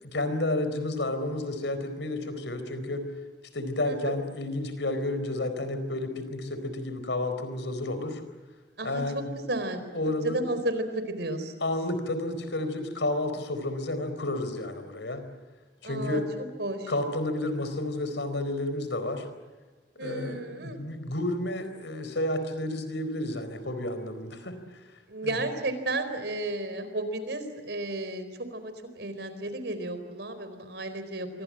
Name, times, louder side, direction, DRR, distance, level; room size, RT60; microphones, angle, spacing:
voice 1, 0.0-3.1 3.5-8.2 8.8-9.3 9.9-10.4 11.6-15.3 15.8-16.3 16.9-19.3 20.0-24.6 25.2-25.4, left 1 dB, 85° left, 10 dB, 4.4 m, -31 dB
voice 2, 8.8-11.5 15.8-16.2 16.6-16.9 20.0-20.8 25.1-28.3 28.5-31.4, right 2 dB, 70° right, 10 dB, 4.3 m, -33 dB
28.0 x 24.0 x 7.6 m, 1.3 s
head